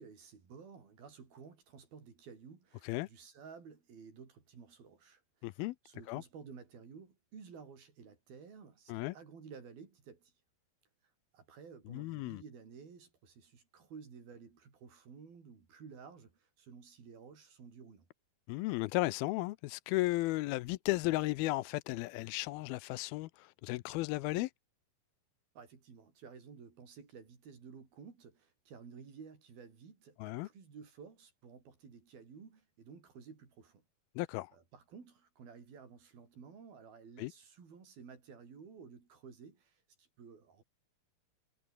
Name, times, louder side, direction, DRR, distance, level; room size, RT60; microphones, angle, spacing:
voice 1, 0.0-10.3 11.3-18.1 25.5-33.8 34.5-40.6, right 6 dB, 70° right, 6.8 m, -54 dB
voice 2, 5.4-5.8 6.1-6.2 8.9-9.2 11.9-12.4 18.5-24.5 30.2-30.5 34.2-34.5 37.2-37.3, left 19 dB, 85° left, 2.5 m, -35 dB
omnidirectional pair, 4.4 m